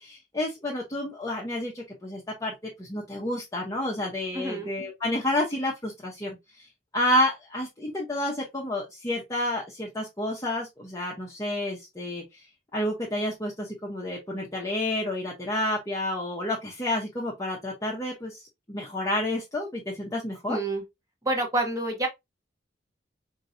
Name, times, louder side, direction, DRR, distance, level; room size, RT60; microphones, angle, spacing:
voice 1, 0.0-2.5 2.8-6.3 6.9-12.4 12.7-18.4 18.7-20.6, left 1 dB, 20° left, 0.8 m, -30 dB
voice 2, 4.3-4.7 20.5-20.8 21.2-22.1, right 2 dB, 20° right, 1.1 m, -27 dB
4.6 x 2.7 x 2.6 m
head